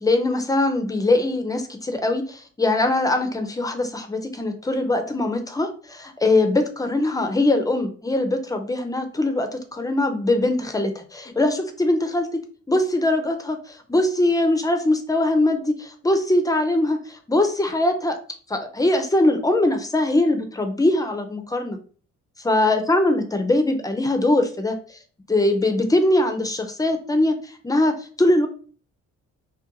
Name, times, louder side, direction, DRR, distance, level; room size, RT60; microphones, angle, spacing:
voice 1, 0.0-12.4 12.7-18.2 18.5-21.8 22.4-24.7 25.3-28.5, left 2 dB, 10° left, 6 dB, 0.4 m, -22 dB
2.5 x 2.1 x 2.7 m, 0.41 s
cardioid pair, 90°, 30 cm